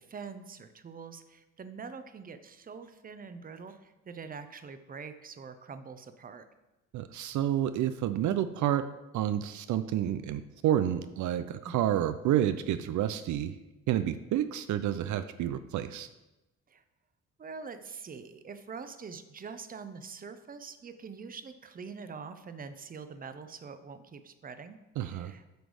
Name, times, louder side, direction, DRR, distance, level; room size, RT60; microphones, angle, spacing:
voice 1, 0.0-6.4 11.6-11.9 16.7-16.8 17.4-25.4, right 5 dB, 30° right, 10 dB, 0.7 m, -44 dB
voice 2, 6.9-8.9 9.1-13.6 13.9-16.1 25.0-25.3, right 11 dB, 75° right, 11 dB, 0.5 m, -29 dB
9.2 x 3.3 x 6.2 m, 1.0 s
cardioid pair, 90°, 30 cm